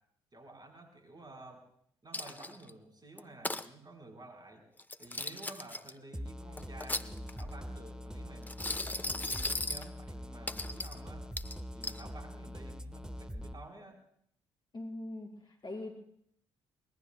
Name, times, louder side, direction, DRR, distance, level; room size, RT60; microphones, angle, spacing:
voice 1, 0.3-1.7 2.0-4.6 5.0-11.3 11.7-14.0, right 2 dB, 30° right, 3 dB, 4.4 m, -52 dB
Coin (dropping), 2.1-2.7 3.2-3.6 4.8-5.9 6.6-7.5 8.4-9.9 10.5-11.0 11.4-12.0, left 2 dB, 15° left, 0.8 m, -37 dB
sound 1, 6.1-13.5, equal, 5° right, 1.3 m, -43 dB
voice 2, 14.7-15.9, left 2 dB, 35° left, 0 dB, 5.1 m, -42 dB
25.5 x 20.5 x 2.3 m, 0.67 s
figure-of-eight pair, 45°, 14 cm